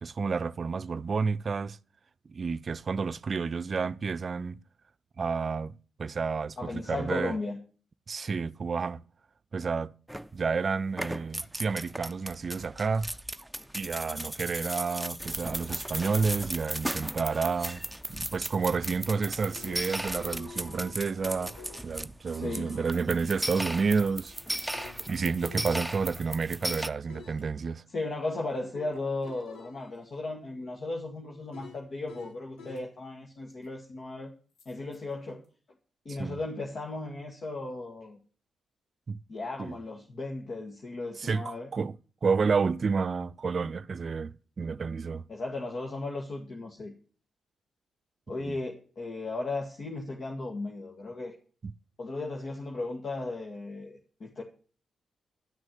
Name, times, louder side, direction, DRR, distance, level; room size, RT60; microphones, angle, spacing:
voice 1, 0.0-1.8 2.3-4.6 5.2-7.4 8.1-9.0 9.5-9.9 10.3-13.1 13.7-17.8 18.1-24.3 25.1-27.8 36.1-36.4 39.1-39.2 39.6-39.8 41.2-42.0 42.2-45.2 48.4-48.6, right 5 dB, 50° right, 0.5 m, -30 dB
voice 2, 6.6-7.6 22.3-22.7 27.9-34.3 34.7-35.4 36.1-38.2 39.3-41.7 45.3-46.9 48.3-51.3 52.0-54.4, left 2 dB, 55° left, 2.1 m, -36 dB
sound 1, 10.1-10.6 10.9-26.9, right 1 dB, 5° right, 0.7 m, -36 dB
sound 2, 19.3-21.9 22.4-26.5 27.1-27.4 28.7-32.9 34.6-35.0, left 4 dB, 85° left, 2.3 m, -50 dB
12.5 x 6.3 x 9.2 m
cardioid pair, 65°, 0 cm